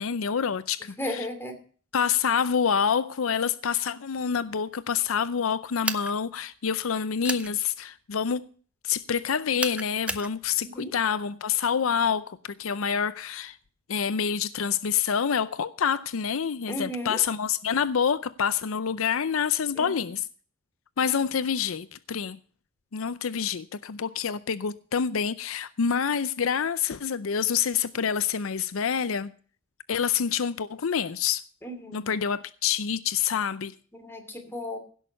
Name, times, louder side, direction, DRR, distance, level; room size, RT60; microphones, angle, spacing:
voice 1, 0.0-1.3 1.9-8.5 8.8-13.6 13.9-20.3 21.0-22.4 22.9-29.3 29.9-31.4 31.9-33.7, left 7 dB, 80° left, 0.6 m, -27 dB
voice 2, 1.0-1.5 10.6-10.9 16.7-17.2 19.8-20.1 31.6-32.1 33.9-34.8, left 1 dB, 10° left, 3.0 m, -35 dB
sound 1, 5.8-6.1 7.2-7.5 9.6-10.3, right 2 dB, 5° right, 0.7 m, -31 dB
16.5 x 6.5 x 6.7 m
head